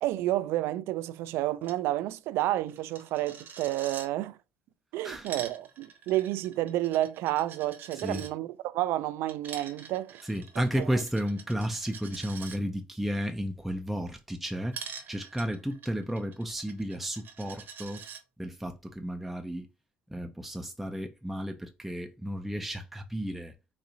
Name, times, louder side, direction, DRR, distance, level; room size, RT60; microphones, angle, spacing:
voice 1, 0.0-4.4 4.9-10.2 10.8-10.9, right 15 dB, 75° right, 0.3 m, -30 dB
Coin (dropping), 1.6-1.8 2.1-2.2 2.4-4.1 5.0-8.3 9.3-12.6 14.7-18.2, right 6 dB, 50° right, 0.8 m, -45 dB
voice 2, 7.9-8.3 10.2-18.0 18.4-19.7 20.1-23.5, equal, 5° right, 0.4 m, -33 dB
4.1 x 2.4 x 2.7 m
supercardioid pair, 90°, 4 cm